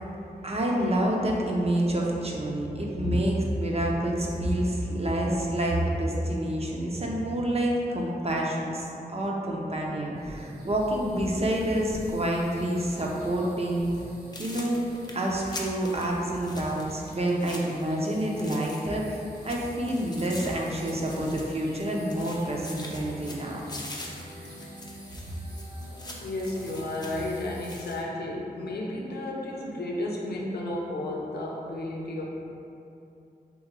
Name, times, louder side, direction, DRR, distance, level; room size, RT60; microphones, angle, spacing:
voice 1, 0.4-13.9 14.4-14.8 15.1-23.6, right 1 dB, 40° right, -2 dB, 0.6 m, -28 dB
sound 1, 9.9-27.1, equal, 65° right, 0.9 m, -48 dB
sound 2, 10.2-27.8, right 1 dB, 85° right, 1.0 m, -53 dB
sound 3, 13.8-14.0 14.3-19.1 19.3-21.8 22.1-28.0, left 2 dB, 25° left, 0.5 m, -44 dB
voice 2, 26.2-32.2, left 1 dB, 90° left, -3 dB, 0.6 m, -32 dB
3.1 x 3.0 x 3.7 m, 2.8 s
wide cardioid pair, 75°, 16 cm